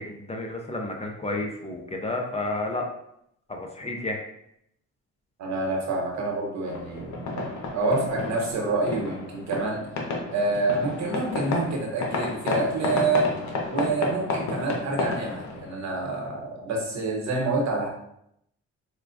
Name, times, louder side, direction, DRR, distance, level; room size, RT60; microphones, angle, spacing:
voice 1, 0.0-2.8 3.5-4.2, left 2 dB, 20° left, 1 dB, 0.5 m, -31 dB
voice 2, 5.4-9.8 10.3-13.3 13.7-17.9, right 3 dB, 65° right, -1 dB, 1.1 m, -27 dB
sound 1, 6.7-15.8, left 3 dB, 70° left, 0.8 m, -31 dB
4.4 x 2.3 x 2.4 m, 0.75 s
cardioid pair, 90°, 30 cm